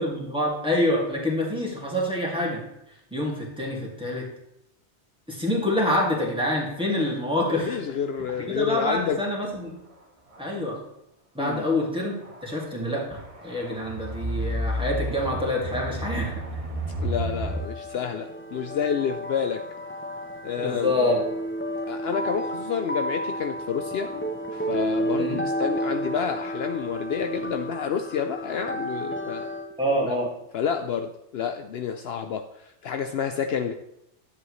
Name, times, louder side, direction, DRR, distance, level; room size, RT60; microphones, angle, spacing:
voice 1, 0.0-2.6 3.1-4.3 5.3-7.8 8.5-9.8 10.4-10.8 11.3-12.1 12.4-16.4 20.6-21.2 25.2-25.4 29.8-30.3, left 1 dB, 5° right, -3 dB, 2.2 m, -26 dB
voice 2, 7.5-9.2 11.4-11.7 17.0-19.6 20.4-20.9 21.9-24.1 24.5-29.5 30.5-33.7, left 7 dB, 65° left, 7 dB, 0.8 m, -29 dB
sound 1, 8.2-8.3 9.0-9.3 10.3-10.4 12.3-12.6 13.1-17.5, equal, 30° right, 1.3 m, -31 dB
sound 2, 17.4-29.7, equal, 15° left, 0.6 m, -32 dB
11.0 x 7.8 x 3.1 m, 0.85 s
omnidirectional pair, 1.2 m